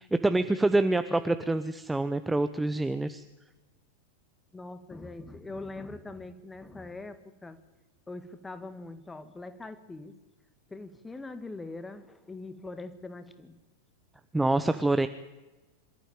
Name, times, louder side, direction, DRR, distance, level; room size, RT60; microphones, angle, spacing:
voice 1, 0.0-3.2 14.3-15.1, right 2 dB, 5° right, 11 dB, 0.9 m, -26 dB
voice 2, 4.5-7.6 8.1-10.2 10.7-13.6, left 2 dB, 10° left, 11 dB, 1.9 m, -42 dB
25.5 x 13.5 x 9.1 m, 1.1 s
figure-of-eight pair, 90°, 0 cm